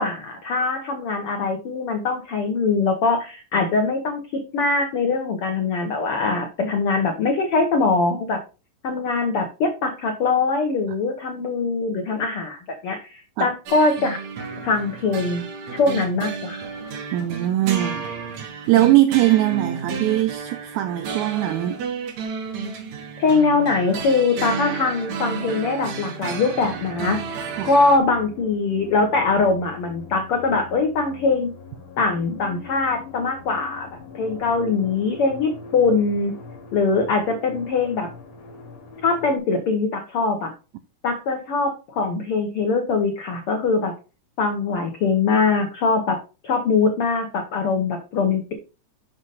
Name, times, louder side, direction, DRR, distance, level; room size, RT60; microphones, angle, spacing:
voice 1, 0.0-8.4 8.8-14.2 14.6-15.4 15.7-16.7 23.2-31.5 32.0-36.3 36.7-38.1 39.0-40.5 41.0-43.9 44.4-46.2 46.4-48.5, left 4 dB, 85° left, 1.2 m, -22 dB
sound 1, 13.7-28.0, right 5 dB, 65° right, 2.5 m, -32 dB
voice 2, 17.1-18.1 18.7-21.8 27.6-27.7, right 14 dB, 85° right, 1.7 m, -20 dB
sound 2, 26.6-39.4, left 3 dB, 70° left, 3.0 m, -42 dB
6.8 x 5.4 x 4.0 m
omnidirectional pair, 4.0 m